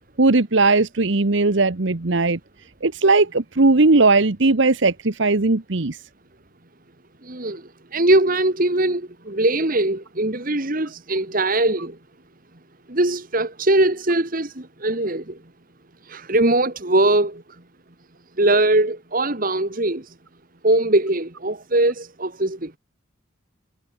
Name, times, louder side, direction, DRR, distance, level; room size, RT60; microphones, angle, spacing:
voice 1, 0.2-2.4 2.8-6.0, right 3 dB, 65° right, 1.1 m, -18 dB
voice 2, 7.2-7.6 7.9-12.0 12.9-15.4 16.1-17.4 18.4-20.1 20.6-22.8, right 2 dB, 45° right, 2.1 m, -21 dB
head